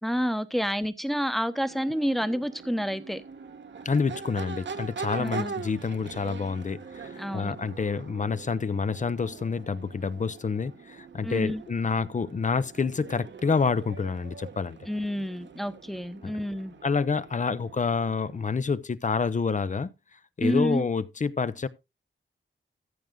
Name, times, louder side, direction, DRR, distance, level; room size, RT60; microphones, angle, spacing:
voice 1, 0.0-3.2 5.2-5.5 7.2-7.6 11.2-11.6 14.9-16.7 20.4-20.9, equal, ahead, 1.0 m, -29 dB
Crowd / Race car auto racing / Accelerating revving vroom, 1.5-18.6, right 5 dB, 65° right, 1.1 m, -42 dB
voice 2, 3.8-14.8 16.8-19.9 20.4-21.7, left 5 dB, 40° left, 0.7 m, -28 dB
14.5 x 6.0 x 3.8 m
wide cardioid pair, 100°, 20 cm